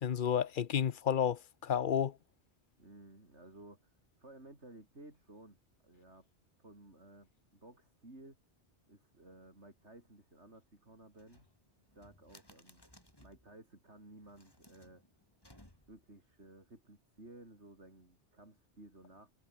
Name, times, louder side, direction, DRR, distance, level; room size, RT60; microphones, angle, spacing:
voice 1, 0.0-2.1, left 8 dB, 55° left, 0.8 m, -31 dB
voice 2, 2.8-5.6 5.8-6.3 6.6-8.4 8.9-11.5 11.9-12.8 13.2-15.0 15.9-19.3, right 2 dB, 90° right, 6.2 m, -56 dB
sound 1, 11.1-13.5 14.2-16.1, left 1 dB, 20° left, 4.7 m, -62 dB
omnidirectional pair, 1.1 m